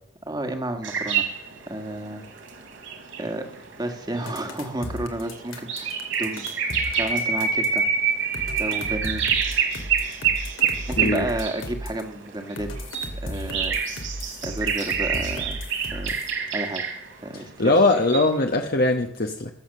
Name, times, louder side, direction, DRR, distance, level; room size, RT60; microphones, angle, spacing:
voice 1, 0.3-1.3 1.7-2.2 3.2-3.5 3.8-6.4 6.7-7.9 8.6-9.3 10.9-12.7 13.2-13.8 14.4-15.6 15.9-16.1 16.5-16.8 17.2-17.7, right 1 dB, 20° right, 5 dB, 1.8 m, -31 dB
sound 1, 0.8-11.6 12.2-17.1 17.9-18.4, right 6 dB, 80° right, 3.2 m, -27 dB
sound 2, 4.3-7.8 8.3-12.0 12.6-16.3, left 1 dB, 85° left, 2.8 m, -35 dB
voice 2, 17.3-19.5, left 2 dB, 50° left, 3 dB, 1.2 m, -21 dB
21.0 x 8.0 x 6.7 m, 0.70 s
head